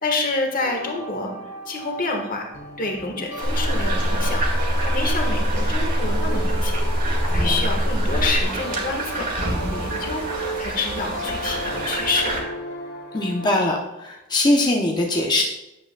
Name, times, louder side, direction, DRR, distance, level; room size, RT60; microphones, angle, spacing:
voice 1, 0.0-1.3 1.7-2.5 2.8-6.9 7.3-9.3 9.7-10.2 10.6-12.3, left 3 dB, 40° left, 2 dB, 1.3 m, -27 dB
sound 1, 0.6-13.6, equal, 60° left, 1.7 m, -35 dB
sound 2, 3.4-12.4, right 2 dB, 40° right, 1.9 m, -29 dB
sound 3, 3.4-8.5, equal, 85° right, 2.7 m, -23 dB
voice 2, 7.2-7.7 13.1-15.4, left 1 dB, 20° left, 0 dB, 0.6 m, -22 dB
9.5 x 8.3 x 2.2 m, 0.97 s
head